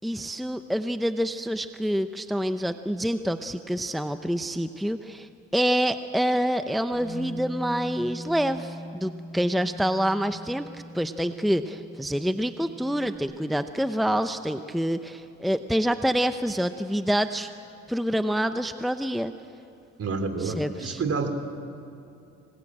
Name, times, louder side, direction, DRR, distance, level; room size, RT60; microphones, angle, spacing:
voice 1, 0.0-10.6 10.9-17.5 17.9-19.3 20.4-21.0, equal, ahead, 9 dB, 0.8 m, -27 dB
Bass guitar, 6.9-13.2, right 1 dB, 75° left, 4.4 m, -41 dB
voice 2, 20.0-21.3, right 4 dB, 50° right, 7 dB, 3.2 m, -28 dB
26.5 x 21.5 x 8.8 m, 2.7 s
cardioid pair, 90°, 30 cm